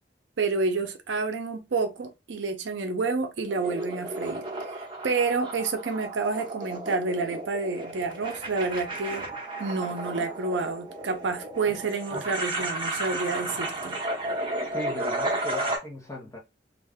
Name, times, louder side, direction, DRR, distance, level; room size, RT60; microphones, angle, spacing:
voice 1, 0.4-4.5 4.7-9.3 9.6-14.0, right 4 dB, 80° right, 0.5 m, -29 dB
sound 1, 3.5-15.8, right 2 dB, 30° right, 0.9 m, -33 dB
voice 2, 14.7-16.4, left 1 dB, 15° left, 0.7 m, -37 dB
2.5 x 2.2 x 3.4 m
head